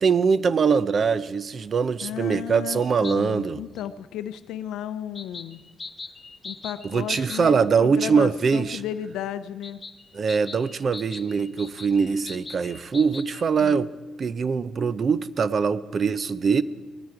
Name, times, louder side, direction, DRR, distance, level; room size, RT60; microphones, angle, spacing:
voice 1, 0.0-3.6 6.8-8.8 10.1-13.9 14.2-16.6, right 5 dB, 45° right, 16 dB, 0.6 m, -23 dB
voice 2, 2.0-5.6 6.4-9.8 13.6-13.9, left 10 dB, 85° left, 11 dB, 0.5 m, -34 dB
sound 1, 2.8-3.2 3.8-3.9 5.1-7.4 9.6-13.4, left 4 dB, 30° left, 0.9 m, -41 dB
19.5 x 13.0 x 4.8 m, 1.3 s
cardioid pair, 100°, 0 cm